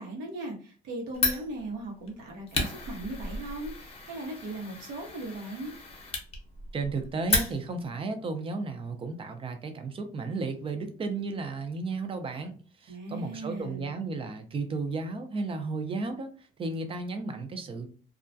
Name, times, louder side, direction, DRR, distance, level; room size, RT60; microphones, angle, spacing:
voice 1, 0.0-5.7 12.9-13.9, right 2 dB, 85° right, 0 dB, 0.9 m, -38 dB
Fire, 1.1-7.9, left 3 dB, 35° left, 0.8 m, -34 dB
voice 2, 6.7-12.5 12.8-16.3 16.6-17.9, right 3 dB, 30° right, 7 dB, 0.5 m, -33 dB
2.3 x 2.1 x 2.6 m, 0.39 s
cardioid pair, 110°, 17 cm